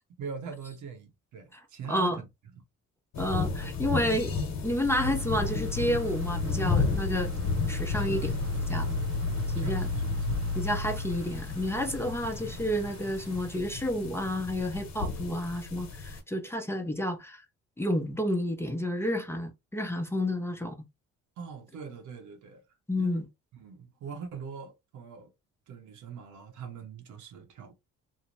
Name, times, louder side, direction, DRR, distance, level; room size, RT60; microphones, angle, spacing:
voice 1, 0.2-2.3 7.9-9.1 9.6-10.4 21.4-22.6 23.0-23.2 23.5-25.3 25.7-27.7, right 6 dB, 80° right, 0.8 m, -42 dB
voice 2, 1.9-2.2 3.2-4.4 4.6-7.3 7.7-8.3 8.7-9.0 9.5-9.9 10.5-17.4 17.8-20.8 22.9-23.3, left 1 dB, 10° left, 0.5 m, -30 dB
sound 1, 3.1-16.2, left 4 dB, 65° left, 0.9 m, -33 dB
sound 2, 4.8-13.1 13.5-13.6, left 2 dB, 50° right, 0.6 m, -34 dB
2.7 x 2.0 x 2.9 m
cardioid pair, 90°, 30 cm